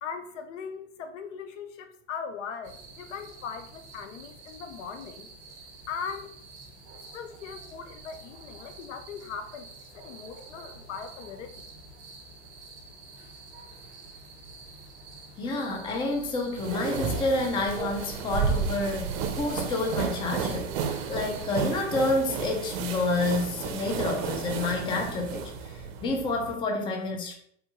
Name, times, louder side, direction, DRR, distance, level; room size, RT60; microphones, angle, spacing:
voice 1, 0.0-5.3 5.9-6.3 7.1-11.6, left 6 dB, 80° left, 8 dB, 0.6 m, -39 dB
sound 1, 2.6-21.6, right 2 dB, 30° right, 1.2 m, -45 dB
voice 2, 15.4-27.3, left 2 dB, 15° left, 3 dB, 0.4 m, -29 dB
sound 2, 16.6-26.6, right 6 dB, 60° right, 0.6 m, -32 dB
3.5 x 2.2 x 2.9 m, 0.66 s
hypercardioid pair, 120°, 36 cm